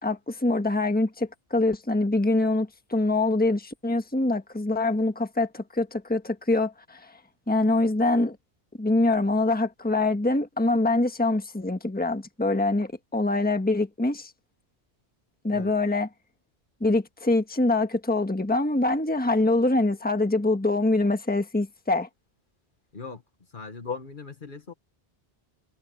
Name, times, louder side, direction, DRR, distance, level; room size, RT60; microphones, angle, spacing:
voice 1, 0.0-7.2 7.5-8.4 8.8-14.3 15.4-16.1 16.8-22.1, left 2 dB, 10° left, 1.4 m, -24 dB
voice 2, 23.5-24.7, left 5 dB, 55° left, 1.6 m, -37 dB
omnidirectional pair, 1.1 m